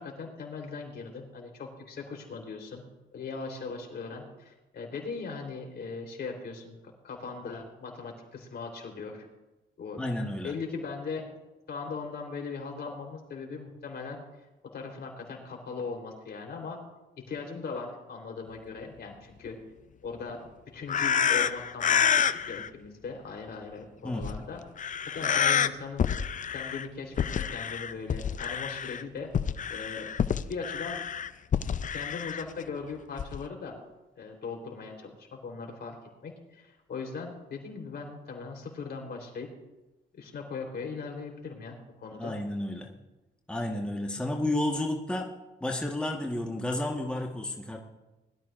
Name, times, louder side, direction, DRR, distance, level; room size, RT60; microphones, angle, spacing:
voice 1, 0.0-2.8 3.1-6.8 7.0-9.3 9.8-10.0 10.4-11.2 11.7-14.2 14.7-16.8 17.2-19.6 20.0-20.5 20.7-24.6 25.1-26.1 26.5-29.3 29.7-30.1 30.5-31.0 31.9-33.7 34.2-36.0 36.2-39.5 40.1-42.3, left 4 dB, 55° left, 1 dB, 3.7 m, -39 dB
voice 2, 10.0-10.5 24.0-24.4 42.2-42.9 43.5-45.3 45.6-47.8, left 1 dB, 5° left, 0 dB, 1.4 m, -31 dB
sound 1, 20.9-22.7 24.2-24.4 24.8-25.7 26.0-26.9 27.2-29.0 29.3-32.4 33.2-33.4, left 8 dB, 40° left, 0.5 m, -28 dB
21.5 x 13.0 x 2.5 m, 1.1 s
cardioid pair, 90°, 20 cm